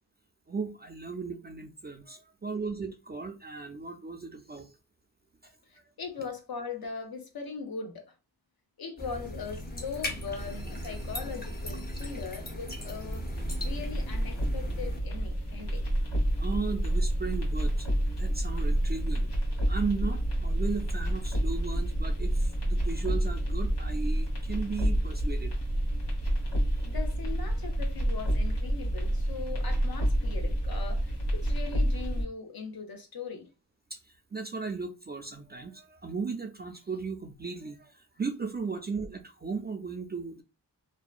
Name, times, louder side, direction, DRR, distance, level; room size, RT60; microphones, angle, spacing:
voice 1, 0.5-4.7 5.4-5.8 16.4-19.3 19.7-25.5 26.7-26.8 33.9-40.4, right 4 dB, 25° right, 0.4 m, -36 dB
voice 2, 5.7-8.1 8.8-13.2 13.6-15.9 26.8-33.5, left 5 dB, 60° left, 0.7 m, -40 dB
sound 1, 9.0-15.0, left 1 dB, 25° left, 0.7 m, -38 dB
sound 2, 13.0-32.2, right 1 dB, 80° left, 1.2 m, -29 dB
2.7 x 2.2 x 2.4 m
cardioid pair, 65°, 41 cm